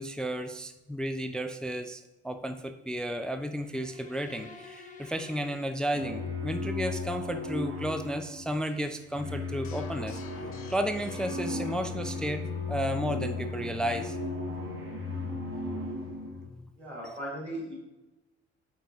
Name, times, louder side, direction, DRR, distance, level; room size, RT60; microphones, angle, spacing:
voice 1, 0.0-10.2 10.7-14.2 16.5-16.7, equal, 5° left, 8 dB, 0.3 m, -33 dB
sound 1, 3.4-6.5, left 4 dB, 20° left, 1.2 m, -50 dB
sound 2, 5.9-16.5, left 3 dB, 40° right, 1.7 m, -36 dB
sound 3, 9.6-16.6, left 10 dB, 40° left, 0.8 m, -46 dB
voice 2, 16.8-17.7, right 1 dB, 90° right, -5 dB, 1.6 m, -37 dB
8.2 x 4.5 x 2.7 m, 0.99 s
figure-of-eight pair, 50°, 33 cm